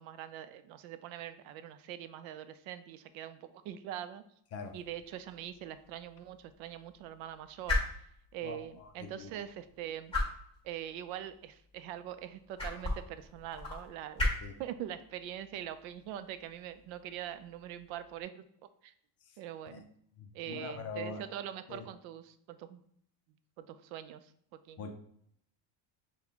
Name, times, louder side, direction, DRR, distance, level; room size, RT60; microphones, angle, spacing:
voice 1, 0.0-4.2 4.7-7.8 8.3-10.1 10.6-14.2 14.6-18.4 18.8-18.9 19.4-19.8 20.3-22.8 23.6-24.8, right 11 dB, 70° right, 12 dB, 0.5 m, -43 dB
sound 1, 4.6-18.2, left 2 dB, 10° left, 1.4 m, -40 dB
voice 2, 8.4-9.3 14.4-14.5 19.2-19.4 19.7-19.8 20.2-21.3 21.7-21.8 24.8-24.9, left 4 dB, 30° left, 5 dB, 0.4 m, -43 dB
6.0 x 2.3 x 3.5 m, 0.68 s
cardioid pair, 160°, 49 cm